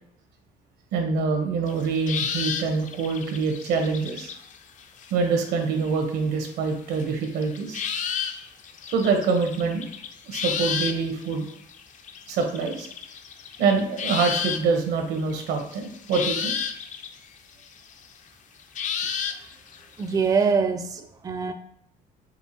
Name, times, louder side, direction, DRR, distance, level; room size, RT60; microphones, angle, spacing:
voice 1, 0.9-4.3 5.1-7.8 8.9-9.8 10.3-11.5 12.3-12.9 13.6-16.6, right 4 dB, 85° right, 3 dB, 1.0 m, -25 dB
sound 1, 1.7-6.0 6.7-14.8 15.2-18.1 18.6-20.5, left 7 dB, 50° left, 0.5 m, -32 dB
voice 2, 20.0-21.5, right 5 dB, 20° right, 6 dB, 0.4 m, -24 dB
5.5 x 2.5 x 2.8 m, 0.70 s
cardioid pair, 110°, 17 cm